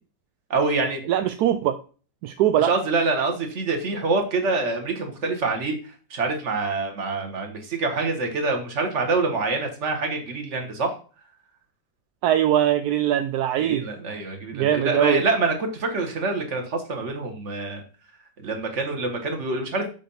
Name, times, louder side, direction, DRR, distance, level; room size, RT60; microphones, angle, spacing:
voice 1, 0.5-1.0 2.6-5.7 6.1-10.9 13.6-17.8 18.4-19.9, right 3 dB, 40° right, 4 dB, 1.6 m, -26 dB
voice 2, 1.1-1.8 2.2-2.7 12.2-13.9 14.5-15.2, right 11 dB, 70° right, 8 dB, 0.9 m, -21 dB
7.5 x 3.6 x 5.5 m, 0.37 s
omnidirectional pair, 2.1 m